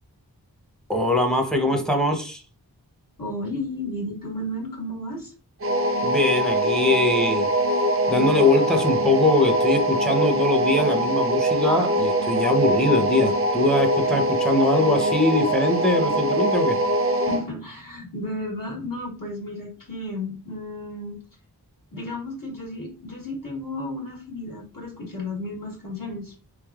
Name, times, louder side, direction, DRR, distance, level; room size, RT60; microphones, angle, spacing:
voice 1, 0.9-2.4 6.0-7.5 8.1-16.8, left 2 dB, ahead, 4 dB, 0.7 m, -22 dB
voice 2, 3.2-5.3 17.3-21.2 21.9-26.3, left 1 dB, 55° left, -3 dB, 1.6 m, -33 dB
sound 1, 5.6-17.5, right 1 dB, 35° right, 0.5 m, -23 dB
3.6 x 3.3 x 2.3 m, 0.36 s
wide cardioid pair, 50°, 41 cm